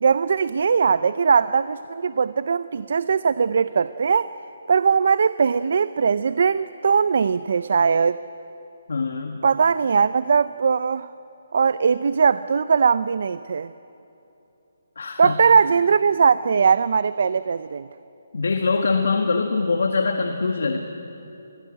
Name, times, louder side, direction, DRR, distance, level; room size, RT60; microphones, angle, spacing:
voice 1, 0.0-4.3 4.7-8.2 9.4-11.1 11.5-13.7 15.2-17.9, right 6 dB, 50° right, 16 dB, 0.4 m, -20 dB
voice 2, 8.9-9.4 14.9-15.4 18.3-20.8, left 4 dB, 70° left, 4 dB, 1.6 m, -23 dB
22.0 x 16.5 x 9.9 m, 2.9 s
hypercardioid pair, 175°, 0 cm